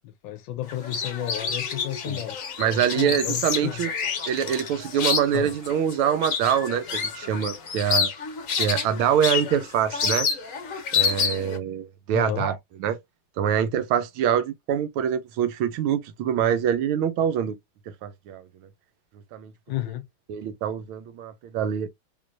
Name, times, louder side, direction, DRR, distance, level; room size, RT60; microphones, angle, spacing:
voice 1, 0.0-2.4 2.8-3.8 5.3-5.5 12.1-12.5 19.7-20.0, left 13 dB, 75° left, 1.2 m, -32 dB
sound 1, 0.7-11.6, left 6 dB, 55° left, 0.9 m, -28 dB
voice 2, 2.6-3.9 4.3-8.1 8.5-10.3 10.9-13.0 13.4-17.6 18.0-18.4 19.3-19.5 20.3-21.9, right 9 dB, 85° right, 1.5 m, -25 dB
3.7 x 3.2 x 2.4 m
omnidirectional pair, 2.3 m